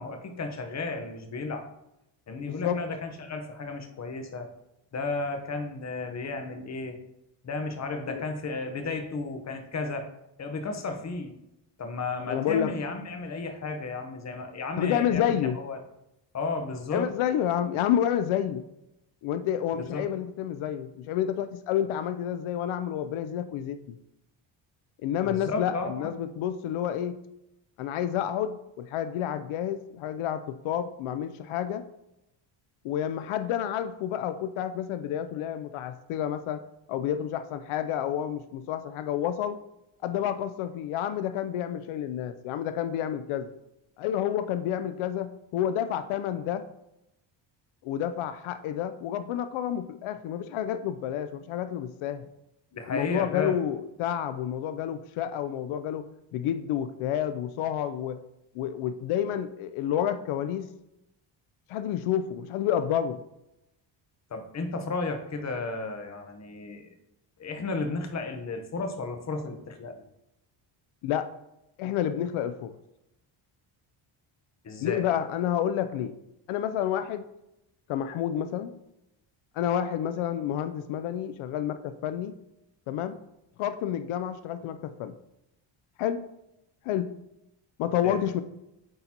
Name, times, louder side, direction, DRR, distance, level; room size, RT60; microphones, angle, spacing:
voice 1, 0.0-1.7 2.3-4.5 4.9-7.0 7.4-10.1 10.4-11.3 11.8-15.8 16.3-17.1 19.7-20.0 25.2-26.1 52.7-53.6 64.3-66.9 67.4-69.9 74.6-75.0 88.0-88.2, left 3 dB, 35° left, 6 dB, 0.9 m, -33 dB
voice 2, 2.4-2.8 8.1-8.2 12.3-12.8 14.8-15.6 16.9-18.6 19.2-24.0 25.0-27.2 27.8-31.9 32.8-36.6 36.9-39.6 40.0-43.5 44.0-46.7 47.8-52.3 52.9-58.2 58.5-60.7 61.7-63.2 71.0-71.3 71.8-72.7 74.8-76.2 76.5-77.3 77.9-78.7 79.5-82.3 82.9-83.1 83.6-85.1 86.0-86.2 86.8-87.1 87.8-88.4, left 10 dB, 80° left, 11 dB, 0.5 m, -29 dB
8.7 x 3.9 x 2.8 m, 0.87 s
cardioid pair, 120°, 49 cm